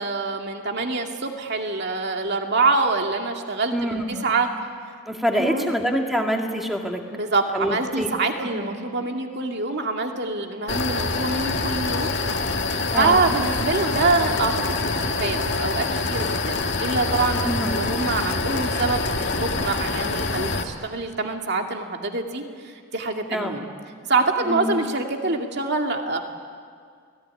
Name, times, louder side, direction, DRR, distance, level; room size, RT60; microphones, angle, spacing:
voice 1, 0.0-4.5 5.3-5.7 7.1-12.1 12.9-23.7 24.1-26.2, right 3 dB, 50° right, 3 dB, 2.4 m, -25 dB
voice 2, 3.7-4.3 5.1-7.0 7.5-8.1 8.4-8.7 12.9-13.2 17.4-17.8 23.3-23.6 24.4-24.7, equal, ahead, 1 dB, 2.2 m, -26 dB
sound 1, 10.7-20.6, left 3 dB, 50° left, 1.9 m, -25 dB
29.0 x 19.5 x 9.7 m, 2.1 s
head